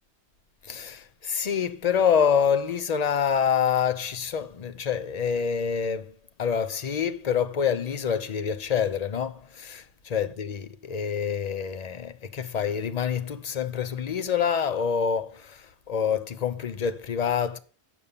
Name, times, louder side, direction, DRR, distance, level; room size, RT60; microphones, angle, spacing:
voice 1, 0.6-6.1 6.4-17.6, left 7 dB, 45° left, 0.7 m, -26 dB
8.4 x 7.0 x 5.3 m
omnidirectional pair, 1.1 m